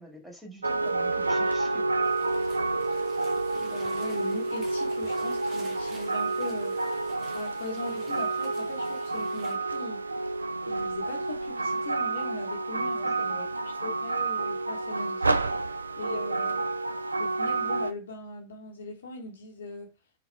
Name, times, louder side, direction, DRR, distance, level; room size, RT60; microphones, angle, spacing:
voice 1, 0.0-2.0 12.9-13.5, right 1 dB, ahead, 2.3 m, -47 dB
sound 1, 0.6-17.9, right 3 dB, 80° right, 0.3 m, -29 dB
sound 2, 2.0-9.6, right 4 dB, 30° right, 1.2 m, -51 dB
voice 2, 3.5-6.8 7.3-10.2 10.7-13.4 13.8-15.7 16.0-16.6 17.2-19.9, left 3 dB, 65° left, 1.1 m, -40 dB
4.0 x 3.9 x 3.2 m
figure-of-eight pair, 90°, 0 cm